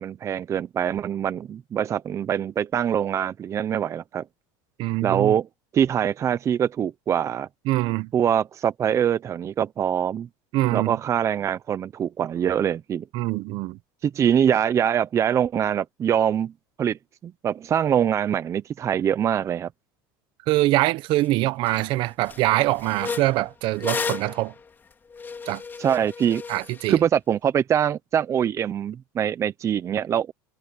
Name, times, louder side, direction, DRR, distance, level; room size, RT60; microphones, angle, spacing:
voice 1, 0.0-4.2 5.0-5.5 5.7-7.5 8.1-10.3 10.7-13.1 14.0-16.5 16.8-19.7 25.8-26.4 26.9-30.3, right 9 dB, 30° right, 0.8 m, -24 dB
voice 2, 4.8-5.3 7.7-8.1 10.5-11.0 13.1-13.8 20.5-24.5 25.5-25.6 26.5-27.0, right 18 dB, 55° right, 1.1 m, -24 dB
sound 1, 21.2-21.3 21.7-21.9 22.2-27.0, left 5 dB, 20° left, 3.5 m, -34 dB
supercardioid pair, 130°, 10 cm